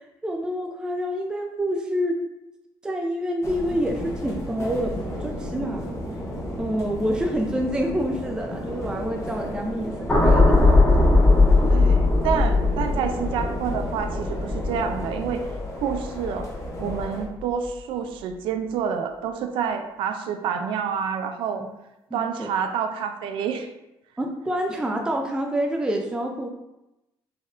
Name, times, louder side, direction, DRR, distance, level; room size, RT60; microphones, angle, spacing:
voice 1, 0.0-2.2 2.8-6.0 6.6-10.7 22.1-22.5 24.2-26.5, equal, 10° right, 2 dB, 0.4 m, -27 dB
sound 1, 3.4-17.3, left 1 dB, 35° left, 0.8 m, -35 dB
sound 2, 4.8-15.2, right 1 dB, 35° right, 0.8 m, -37 dB
sound 3, 10.1-16.4 16.7-17.0, left 2 dB, 10° left, 1.1 m, -19 dB
voice 2, 11.7-16.5 16.8-21.7 22.1-23.7, right 7 dB, 80° right, 6 dB, 0.4 m, -28 dB
4.2 x 3.4 x 2.5 m, 0.94 s
cardioid pair, 125°, 9 cm